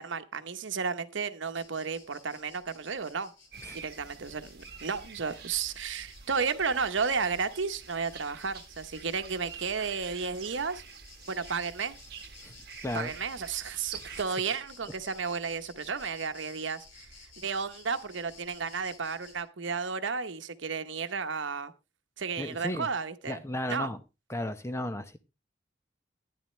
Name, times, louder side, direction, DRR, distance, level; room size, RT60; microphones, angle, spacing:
voice 1, 0.0-3.3 3.7-10.8 11.3-12.0 12.9-17.1 17.4-21.7 22.2-23.4 23.7-23.9, right 5 dB, 80° right, 0.9 m, -33 dB
sound 1, 1.5-19.4, left 4 dB, 85° left, 3.6 m, -55 dB
sound 2, 3.5-14.3, right 6 dB, 55° right, 1.3 m, -48 dB
voice 2, 12.8-13.1 13.9-14.2 22.4-22.9 23.3-24.0 24.3-25.2, left 1 dB, 15° left, 0.8 m, -34 dB
12.5 x 10.5 x 3.1 m
head